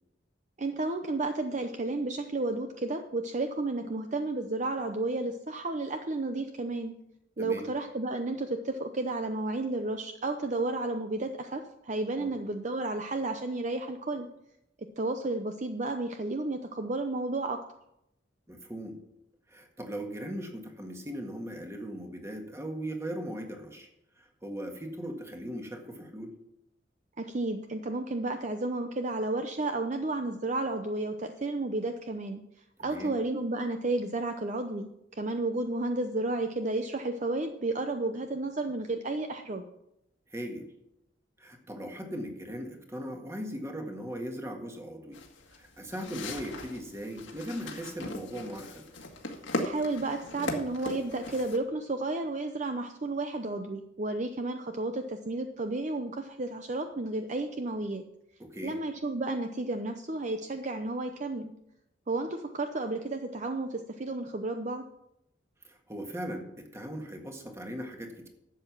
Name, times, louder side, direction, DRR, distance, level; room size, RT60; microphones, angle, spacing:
voice 1, 0.6-6.9 7.4-14.3 15.0-17.6 27.2-32.4 32.8-39.6 49.6-58.0 58.6-61.5 62.1-64.8, right 2 dB, 40° right, 6 dB, 0.7 m, -32 dB
voice 2, 18.5-19.0 19.5-23.9 24.2-26.3 32.8-33.2 40.3-40.7 41.4-45.2 45.5-48.8 58.4-58.8 65.6-68.3, equal, 15° right, 3 dB, 1.6 m, -39 dB
sound 1, 45.1-51.6, left 1 dB, 90° left, 1.8 m, -38 dB
12.0 x 7.8 x 5.9 m, 0.81 s
head